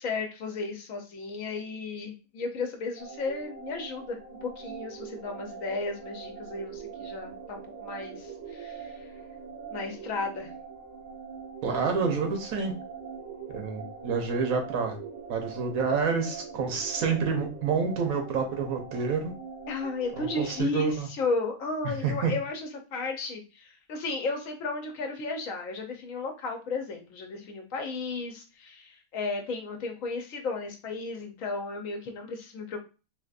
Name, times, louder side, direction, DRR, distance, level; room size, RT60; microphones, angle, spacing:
voice 1, 0.0-9.0 9.7-10.5 19.7-32.8, left 3 dB, 75° left, 3 dB, 1.2 m, -34 dB
sound 1, 3.0-20.6, right 5 dB, 65° right, 1.4 m, -43 dB
voice 2, 11.6-12.7 13.5-15.0 15.3-19.3 20.2-21.1 22.0-22.3, right 5 dB, 90° right, 4 dB, 1.3 m, -28 dB
3.7 x 2.8 x 2.4 m, 0.32 s
omnidirectional pair, 1.4 m